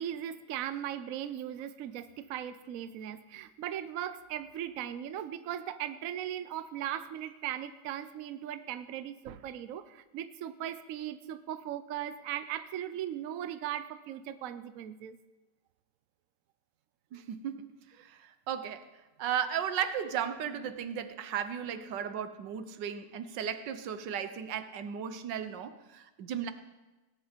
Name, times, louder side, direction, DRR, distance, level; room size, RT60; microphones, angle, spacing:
voice 1, 0.0-15.2, right 11 dB, 65° right, 12 dB, 1.0 m, -38 dB
voice 2, 17.1-18.9 19.2-26.5, right 8 dB, 85° right, 11 dB, 1.6 m, -35 dB
18.0 x 10.5 x 5.1 m, 1.1 s
omnidirectional pair, 1.9 m